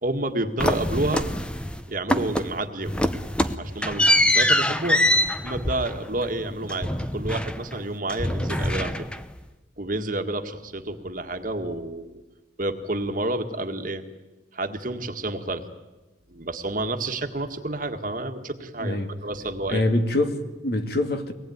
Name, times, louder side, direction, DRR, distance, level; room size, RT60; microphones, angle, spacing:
voice 1, 0.0-1.3 1.9-3.0 3.4-4.1 4.3-5.0 5.4-9.0 9.8-12.2 12.6-14.0 14.5-15.6 16.3-19.8, right 2 dB, 45° right, 6 dB, 1.7 m, -29 dB
sound 1, 0.6-1.8 2.1-2.6 2.9-7.8 8.1-9.4, left 1 dB, 5° left, 0.8 m, -24 dB
voice 2, 18.8-19.1 19.7-21.3, left 1 dB, 55° left, 7 dB, 2.1 m, -24 dB
24.0 x 19.0 x 9.5 m, 1.1 s
head